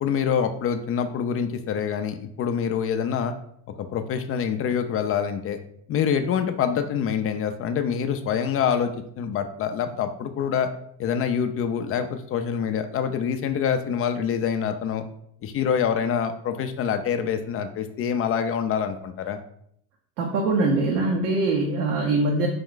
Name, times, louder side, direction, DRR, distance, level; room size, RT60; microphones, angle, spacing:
voice 1, 0.0-3.4 3.8-5.6 5.9-10.7 11.0-15.0 15.4-19.4, left 7 dB, 30° left, 8 dB, 0.3 m, -26 dB
voice 2, 20.2-22.5, right 2 dB, 70° right, 1 dB, 0.8 m, -23 dB
5.2 x 2.3 x 3.7 m, 0.68 s
hypercardioid pair, 75°, 48 cm